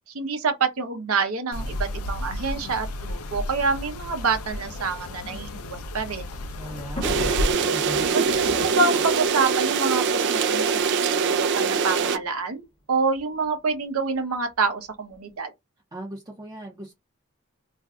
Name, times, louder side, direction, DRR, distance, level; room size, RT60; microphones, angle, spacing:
voice 1, 0.1-6.3 8.1-15.5, right 4 dB, 70° right, 0.7 m, -27 dB
sound 1, 1.5-7.5, left 1 dB, 75° left, 0.5 m, -32 dB
Thunder, 5.7-10.8 11.7-11.8 12.0-12.1 13.2-13.5, equal, 25° left, 0.9 m, -38 dB
voice 2, 6.6-7.2 7.6-8.2 15.9-16.9, right 1 dB, 20° right, 0.6 m, -38 dB
sound 2, 7.0-12.2, right 5 dB, 55° right, 0.4 m, -23 dB
2.5 x 2.2 x 3.6 m
head